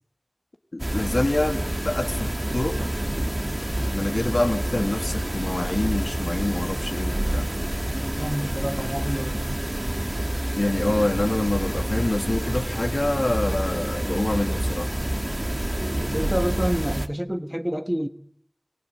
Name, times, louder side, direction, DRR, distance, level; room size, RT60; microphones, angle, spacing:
voice 1, 0.7-2.8 3.9-7.5 10.6-14.9, left 2 dB, 70° left, 6 dB, 2.4 m, -26 dB
sound 1, 0.8-17.1, right 1 dB, 30° right, 1.7 m, -28 dB
voice 2, 7.9-9.4 16.0-18.1, equal, 10° right, 8 dB, 1.4 m, -28 dB
29.0 x 21.0 x 8.5 m, 0.67 s
wide cardioid pair, 45°, 0 cm